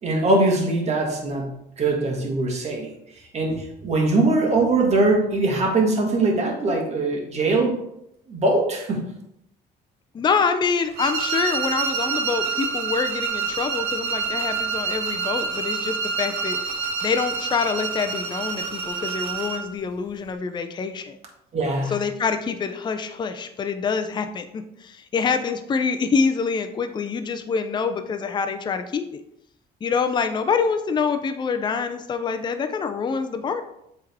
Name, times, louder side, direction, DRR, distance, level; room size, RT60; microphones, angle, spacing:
voice 1, 0.0-2.9 3.3-7.8 8.3-9.1 21.5-22.0, right 2 dB, 40° right, 1 dB, 1.6 m, -22 dB
voice 2, 10.1-21.2 21.9-29.2 29.8-33.6, left 5 dB, 25° left, 8 dB, 0.5 m, -26 dB
sound 1, 10.9-19.7, right 5 dB, 80° right, 1.0 m, -27 dB
7.6 x 3.6 x 3.5 m, 0.80 s
cardioid pair, 110°, 17 cm